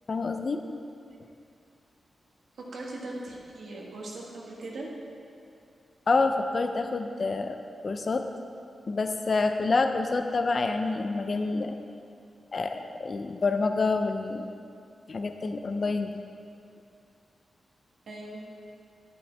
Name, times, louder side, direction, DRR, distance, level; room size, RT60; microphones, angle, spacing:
voice 1, 0.1-0.6 6.1-7.6 7.8-8.3 8.9-11.8 12.5-14.5 15.1-16.1, left 3 dB, 40° left, 6 dB, 0.5 m, -27 dB
voice 2, 2.6-4.9 18.1-18.4, right 2 dB, 75° right, -3 dB, 1.7 m, -39 dB
11.0 x 10.5 x 3.3 m, 2.5 s
wide cardioid pair, 160°, 0 cm